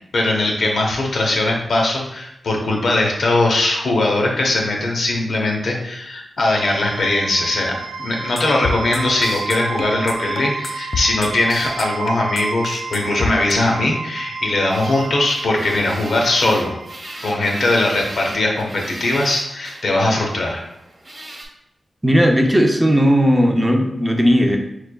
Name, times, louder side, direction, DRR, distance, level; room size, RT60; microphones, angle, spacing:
voice 1, 0.1-16.7 17.2-20.6, left 2 dB, 70° left, 0 dB, 0.8 m, -20 dB
sound 1, 6.5-20.4, right 4 dB, 85° right, 0.3 m, -32 dB
sound 2, 8.4-13.5, left 3 dB, 45° left, 0.4 m, -26 dB
sound 3, 14.7-21.4, right 1 dB, 30° right, 1.0 m, -37 dB
voice 2, 22.0-24.6, equal, 10° right, 3 dB, 0.4 m, -15 dB
5.8 x 3.2 x 2.2 m, 0.83 s
wide cardioid pair, 160°, 0 cm